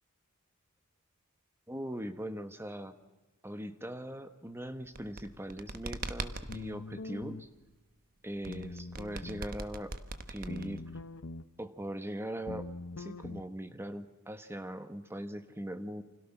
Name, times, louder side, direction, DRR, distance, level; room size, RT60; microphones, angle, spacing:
voice 1, 1.7-2.9 3.4-7.5 8.2-9.9 10.3-10.8 11.6-12.6 13.0-16.0, right 1 dB, 10° right, 9 dB, 1.4 m, -40 dB
sound 1, 4.8-6.6 8.4-11.0, right 3 dB, 40° right, 1.3 m, -40 dB
sound 2, 6.5-7.5 8.5-9.5 10.5-11.5 12.5-13.4, left 2 dB, 60° left, 1.0 m, -43 dB
29.5 x 25.5 x 6.0 m, 1.1 s
head